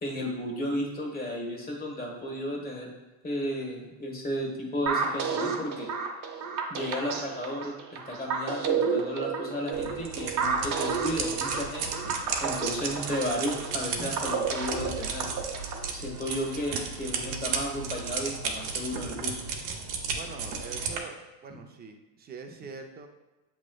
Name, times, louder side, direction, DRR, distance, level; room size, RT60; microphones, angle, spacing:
voice 1, 0.0-2.9 3.2-5.9 6.7-11.9 12.4-15.3 15.9-19.4, equal, 20° left, -1 dB, 1.3 m, -33 dB
sound 1, 4.9-15.9, right 5 dB, 40° right, 0.7 m, -31 dB
sound 2, 9.7-21.0, right 5 dB, 85° right, 0.9 m, -34 dB
voice 2, 20.1-23.1, right 5 dB, 20° right, 4 dB, 0.4 m, -43 dB
7.2 x 3.1 x 2.3 m, 1.1 s
supercardioid pair, 105°, 49 cm